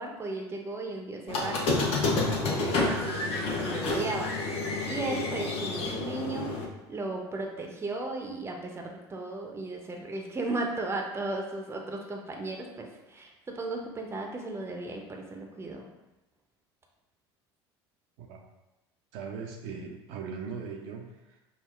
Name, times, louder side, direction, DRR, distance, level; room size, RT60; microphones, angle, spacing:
voice 1, 0.0-4.3 4.8-6.5 6.9-15.9, right 2 dB, 20° right, 1 dB, 0.6 m, -36 dB
Squeak, 1.3-6.6, left 3 dB, 40° left, 0.8 m, -29 dB
voice 2, 19.1-21.4, right 5 dB, 60° right, 1 dB, 0.5 m, -39 dB
5.3 x 2.0 x 2.4 m, 0.99 s
hypercardioid pair, 70°, 14 cm